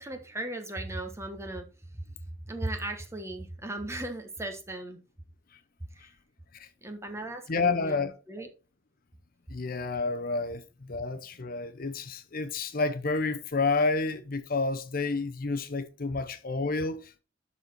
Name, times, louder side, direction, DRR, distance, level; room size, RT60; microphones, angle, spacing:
voice 1, 0.0-1.6 2.4-5.0 6.8-8.5, right 1 dB, 15° right, 1.3 m, -37 dB
voice 2, 7.5-8.1 9.5-17.2, left 3 dB, 50° left, 0.7 m, -30 dB
12.0 x 4.2 x 4.4 m
head